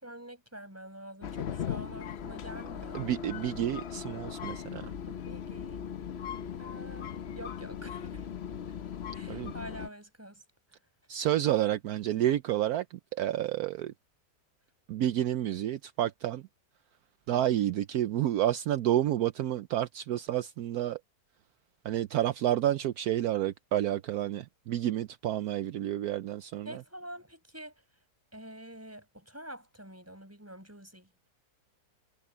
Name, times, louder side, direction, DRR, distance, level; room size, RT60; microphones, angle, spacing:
voice 1, 0.0-3.1 5.0-5.9 6.6-8.3 9.1-10.4 26.6-27.8 28.3-31.1, right 1 dB, 10° right, 6.3 m, -47 dB
sound 1, 1.2-9.9, left 8 dB, 50° left, 0.8 m, -38 dB
voice 2, 2.9-4.9 9.3-9.5 11.1-13.9 14.9-16.4 17.3-21.0 21.8-26.8, right 12 dB, 70° right, 1.1 m, -30 dB
omnidirectional pair, 1.8 m